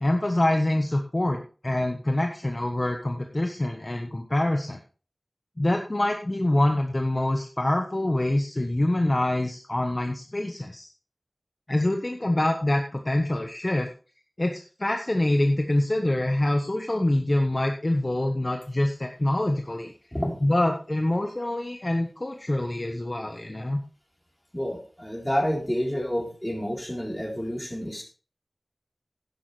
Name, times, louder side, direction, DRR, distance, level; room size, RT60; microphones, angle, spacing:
voice 1, 0.0-4.8 5.6-10.9 11.7-13.9 14.4-14.5 14.8-19.9 20.4-23.8, left 1 dB, 40° left, 4 dB, 1.2 m, -25 dB
voice 2, 24.5-28.0, equal, 10° left, 0 dB, 3.9 m, -29 dB
11.0 x 10.5 x 3.3 m, 0.36 s
wide cardioid pair, 55°, 0 cm